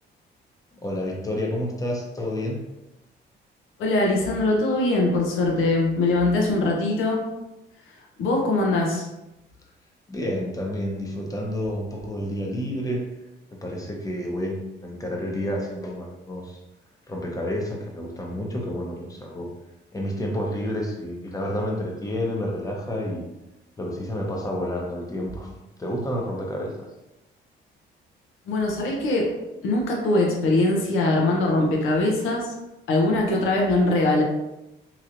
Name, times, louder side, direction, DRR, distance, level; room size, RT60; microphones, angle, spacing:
voice 1, 0.7-2.6 10.1-13.1 13.5-16.6 17.1-19.5 19.9-23.3 23.8-25.5 25.8-26.9, equal, 15° left, -1 dB, 0.7 m, -29 dB
voice 2, 3.8-7.2 8.2-9.0 28.5-29.3 29.6-32.5 32.9-34.2, left 2 dB, 85° left, -1 dB, 0.8 m, -22 dB
3.1 x 3.0 x 2.5 m, 0.94 s
cardioid pair, 90°, 20 cm